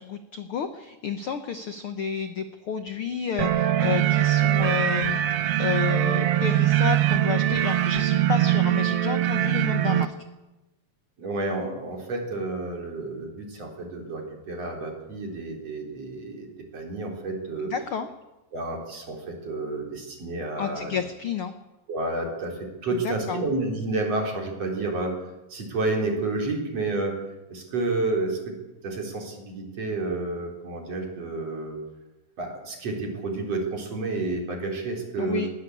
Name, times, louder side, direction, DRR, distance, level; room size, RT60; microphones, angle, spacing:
voice 1, 0.0-10.1 17.6-18.1 20.6-21.5 22.9-23.4 35.2-35.5, left 7 dB, 75° left, 9 dB, 1.2 m, -31 dB
sound 1, 3.4-10.1, right 12 dB, 70° right, 1.4 m, -22 dB
voice 2, 11.2-17.7 18.5-21.0 21.9-25.2 25.5-27.2 27.5-28.6 28.8-31.8 32.4-35.5, right 2 dB, 45° right, 2 dB, 4.9 m, -30 dB
21.0 x 18.0 x 8.5 m, 1.0 s
omnidirectional pair, 4.0 m